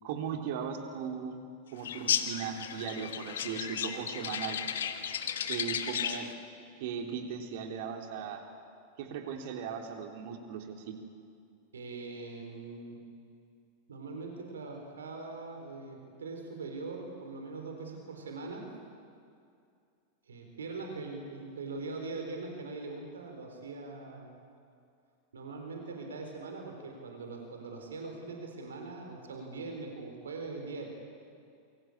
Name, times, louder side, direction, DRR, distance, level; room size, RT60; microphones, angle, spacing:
voice 1, 0.0-1.4 1.7-4.6 5.5-6.3 6.8-8.4 9.0-11.0, right 7 dB, 50° right, 3 dB, 3.6 m, -38 dB
sound 1, 1.8-6.3, left 8 dB, 60° left, 1.6 m, -34 dB
voice 2, 11.7-13.0 13.9-18.7 20.3-24.3 25.3-30.9, right 3 dB, 70° right, 3 dB, 4.3 m, -41 dB
28.5 x 24.0 x 8.8 m, 2.4 s
figure-of-eight pair, 90°, 0 cm